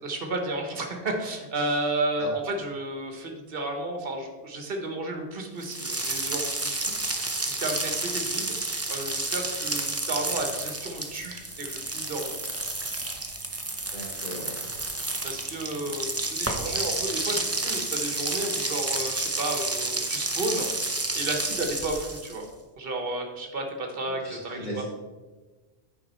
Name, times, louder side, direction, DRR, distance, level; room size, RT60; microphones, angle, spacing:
voice 1, 0.0-6.9 7.5-8.5 8.9-12.4 15.2-20.7 21.1-22.4 22.8-24.8, right 2 dB, 55° right, 4 dB, 1.4 m, -32 dB
sound 1, 5.6-22.4, right 2 dB, 15° right, 0.6 m, -30 dB
voice 2, 13.9-14.6 24.2-24.8, equal, 45° left, -5 dB, 1.7 m, -37 dB
8.3 x 5.2 x 4.3 m, 1.2 s
omnidirectional pair, 1.1 m